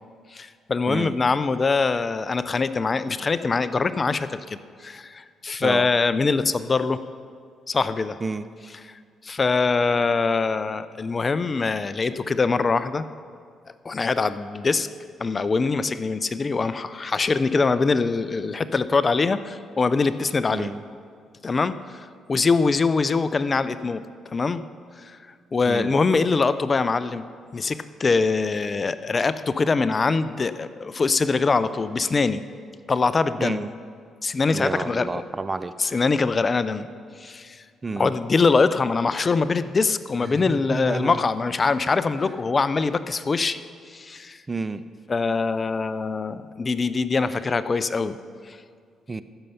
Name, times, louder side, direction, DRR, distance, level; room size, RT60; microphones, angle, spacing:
voice 1, 0.3-7.0 7.7-8.2 8.6-13.0 13.8-14.9 15.2-20.7 21.4-24.0 24.3-24.6 25.0-25.2 25.5-27.2 27.5-32.4 32.9-33.7 34.2-35.3 35.8-36.9 37.2-37.6 38.0-43.6 43.9-44.4 45.1-48.2 48.5-48.6, left 4 dB, 35° left, 13 dB, 0.4 m, -23 dB
voice 2, 20.5-20.8 25.7-25.9 33.4-33.7 34.5-35.7 37.8-38.1 40.3-41.2 44.5-44.8 49.1-49.2, right 3 dB, 25° right, 14 dB, 0.4 m, -30 dB
14.5 x 6.7 x 5.6 m, 2.1 s
cardioid pair, 90°, 0 cm